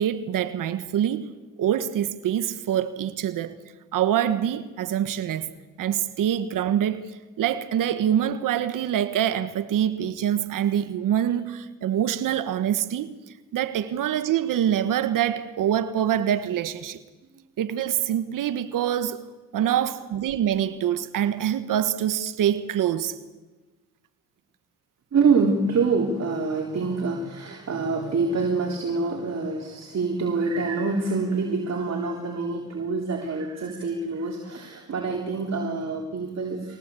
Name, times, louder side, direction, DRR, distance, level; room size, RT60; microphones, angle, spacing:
voice 1, 0.0-1.3 1.6-3.6 3.9-5.5 5.8-17.0 17.6-19.2 19.5-23.1, right 10 dB, 75° right, 1.5 m, -25 dB
voice 2, 25.1-36.8, right 4 dB, 50° right, 3.7 m, -26 dB
23.5 x 18.5 x 8.5 m
supercardioid pair, 65°, 33 cm